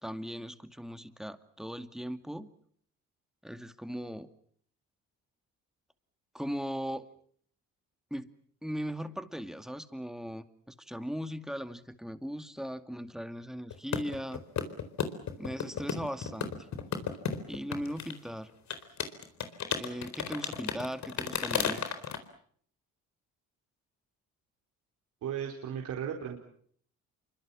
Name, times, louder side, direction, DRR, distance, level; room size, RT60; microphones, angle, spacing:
voice 1, 0.0-2.5 3.4-4.3 6.3-7.1 8.1-8.3 8.6-14.4 15.4-16.5 17.5-18.5 19.7-21.9, equal, ahead, 9 dB, 2.3 m, -38 dB
sound 1, 13.7-18.1 18.7-22.2, left 7 dB, 65° left, 4.2 m, -33 dB
voice 2, 25.2-26.4, right 8 dB, 75° right, 1 dB, 4.7 m, -35 dB
28.5 x 24.5 x 7.3 m, 0.62 s
cardioid pair, 90°, 30 cm